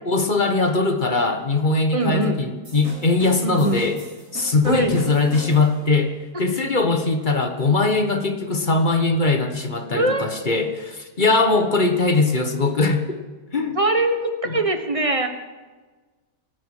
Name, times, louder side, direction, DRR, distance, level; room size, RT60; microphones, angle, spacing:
voice 1, 0.0-4.0 4.3-6.1 6.4-13.2 13.5-13.8 14.4-14.6, left 3 dB, 30° left, 6 dB, 1.1 m, -21 dB
voice 2, 1.9-2.4 3.4-3.8 4.6-4.9 9.9-10.3 13.7-15.3, right 2 dB, 20° right, 6 dB, 1.2 m, -22 dB
sound 1, 2.6-5.9, right 1 dB, 65° right, 5.5 m, -39 dB
25.5 x 10.5 x 4.9 m, 1.3 s
omnidirectional pair, 1.8 m